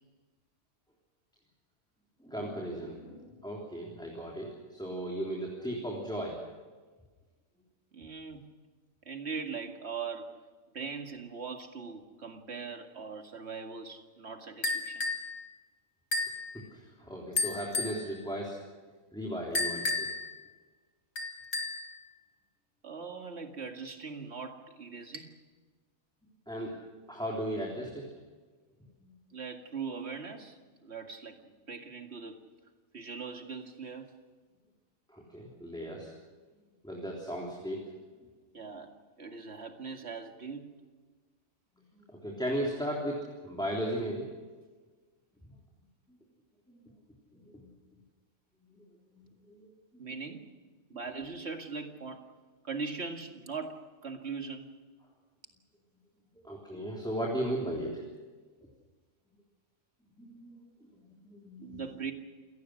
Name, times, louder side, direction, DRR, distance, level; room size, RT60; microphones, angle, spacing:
voice 1, 2.2-6.4 16.7-18.6 19.1-20.1 26.5-26.7 27.1-28.1 29.0-29.1 35.1-36.1 36.8-37.8 42.1-44.3 46.7-46.8 47.5-47.7 48.7-48.8 49.1-49.7 56.4-58.0 60.2-60.6 61.0-61.8, equal, 5° left, -3 dB, 3.5 m, -36 dB
voice 2, 7.9-8.4 9.1-10.3 10.7-15.1 22.8-25.3 29.3-32.4 32.9-34.1 38.5-38.9 39.2-40.7 50.0-50.5 50.9-52.2 52.6-54.8 61.6-62.1, right 5 dB, 50° right, 4 dB, 2.3 m, -40 dB
sound 1, 14.6-15.3 16.1-16.4 17.4-18.0 19.5-20.3 21.2-21.9, left 3 dB, 65° left, 2.8 m, -32 dB
28.0 x 18.0 x 6.4 m, 1.4 s
omnidirectional pair, 1.4 m